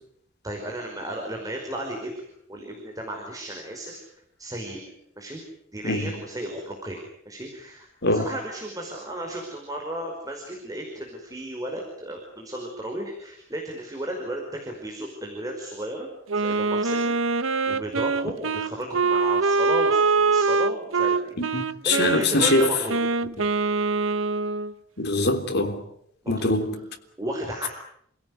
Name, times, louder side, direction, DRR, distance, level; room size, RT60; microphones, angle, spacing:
voice 1, 0.4-2.2 2.5-4.0 4.4-4.8 5.2-5.4 5.7-16.1 16.3-23.0 26.2-26.6 27.2-27.7, right 1 dB, 20° right, 5.2 m, -34 dB
voice 2, 5.8-6.2 8.0-8.3 21.4-22.7 23.4-23.5 25.0-25.8 26.3-26.9, left 2 dB, 55° left, 3.5 m, -23 dB
Wind instrument woodwind instrument, 16.3-24.7, right 4 dB, 85° right, 1.1 m, -24 dB
29.5 x 17.0 x 9.7 m
head